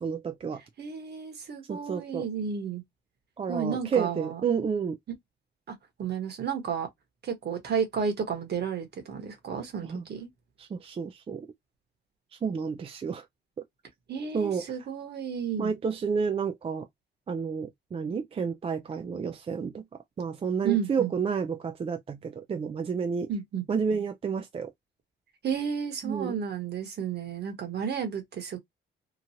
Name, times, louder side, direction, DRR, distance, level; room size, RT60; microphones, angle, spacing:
voice 1, 0.0-0.6 1.7-2.3 3.4-5.0 9.8-10.0 10.6-11.5 12.4-13.3 14.3-14.7 15.6-16.9 17.3-19.8 20.2-23.3 23.7-24.7 26.0-26.4, right 6 dB, 30° right, 0.4 m, -30 dB
voice 2, 0.8-2.8 3.5-4.4 5.7-6.9 7.2-10.3 14.1-15.8 20.6-21.1 23.3-23.6 25.4-28.6, right 7 dB, 55° right, 1.2 m, -32 dB
3.0 x 2.4 x 2.8 m
cardioid pair, 90°, 20 cm